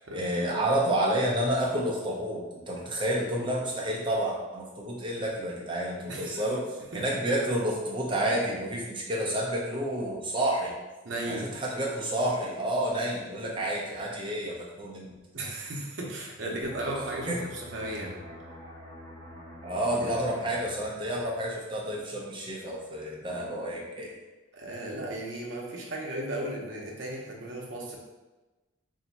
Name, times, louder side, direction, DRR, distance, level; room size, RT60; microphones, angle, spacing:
voice 1, 0.0-10.7 11.3-15.1 17.3-17.4 19.6-24.1, right 1 dB, 25° right, -3 dB, 0.7 m, -30 dB
voice 2, 6.1-6.4 6.9-7.2 11.0-11.6 15.3-18.2 24.5-28.0, right 1 dB, 65° right, -2 dB, 0.8 m, -35 dB
sound 1, 16.6-22.0 22.3-22.6, equal, 10° left, 1.1 m, -47 dB
3.4 x 2.7 x 4.1 m, 1.2 s
head